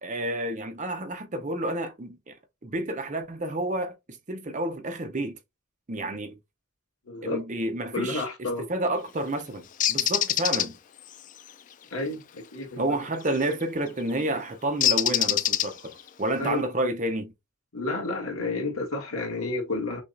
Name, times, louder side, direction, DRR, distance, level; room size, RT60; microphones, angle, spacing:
voice 1, 0.0-2.4 2.6-5.4 5.9-6.4 7.2-10.8 12.8-17.3, right 1 dB, 35° right, 0.7 m, -30 dB
voice 2, 7.0-7.4 7.9-8.7 11.9-12.8 16.4-16.6 17.7-20.0, left 2 dB, 90° left, 1.7 m, -30 dB
Bird, 9.8-10.7 13.3-13.5 14.8-16.0, left 11 dB, 35° left, 0.3 m, -24 dB
6.1 x 2.4 x 2.6 m
head